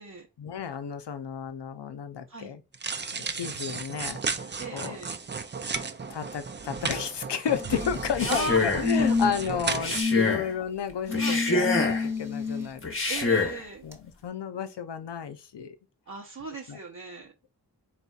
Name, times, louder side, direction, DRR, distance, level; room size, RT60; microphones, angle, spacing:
voice 1, 0.4-2.6 3.1-5.0 6.1-12.9 13.4-13.5 13.8-15.8 16.7-16.8, left 7 dB, 85° left, 0.7 m, -32 dB
sound 1, 2.7-10.0, right 4 dB, 30° right, 0.4 m, -34 dB
voice 2, 4.6-5.1 8.3-8.6 9.1-9.2 10.0-10.3 11.2-11.5 13.1-13.8 16.1-17.3, right 3 dB, 45° right, 0.9 m, -36 dB
sound 2, 7.5-8.1 8.8-9.5 9.9-10.4 11.1-12.7 13.9-14.0, left 4 dB, 5° right, 0.9 m, -28 dB
Male speech man speaking, 8.0-8.9 9.7-10.5 11.1-12.1 12.8-13.6, left 3 dB, 30° left, 0.9 m, -26 dB
4.1 x 4.1 x 2.4 m
wide cardioid pair, 85°, 41 cm